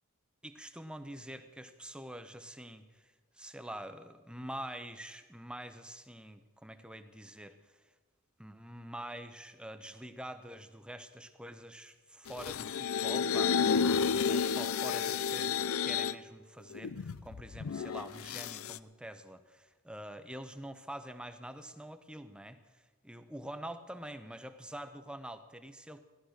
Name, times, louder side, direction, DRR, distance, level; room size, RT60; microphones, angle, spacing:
voice 1, 0.4-7.8 8.4-26.0, right 1 dB, 5° right, 9 dB, 0.7 m, -46 dB
sound 1, 12.3-16.1 16.7-18.8, left 6 dB, 70° left, 0.5 m, -31 dB
16.0 x 12.0 x 6.4 m, 1.3 s
head